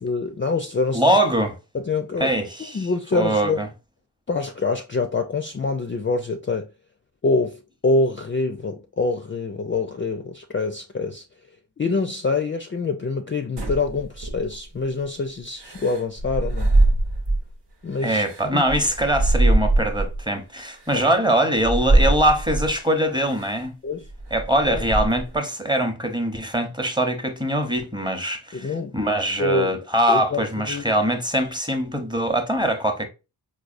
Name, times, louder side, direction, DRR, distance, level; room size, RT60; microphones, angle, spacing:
voice 1, 0.0-1.0 1.7-2.3 2.6-3.6 4.3-6.7 7.2-11.2 11.8-16.7 17.8-18.2 18.5-18.6 23.8-24.1 24.7-24.8 28.5-28.9 29.4-29.7 30.1-30.9, left 3 dB, 30° left, 0.4 m, -25 dB
voice 2, 0.9-1.6 2.2-3.7 18.0-23.7 24.3-33.1, right 1 dB, 10° right, 0.7 m, -22 dB
sound 1, 13.6-14.8 15.6-17.5 18.0-20.2 20.9-21.0 21.6-22.7 23.3-23.6 24.0-25.4, right 2 dB, 85° right, 1.0 m, -22 dB
4.7 x 2.3 x 2.4 m
wide cardioid pair, 65°, 41 cm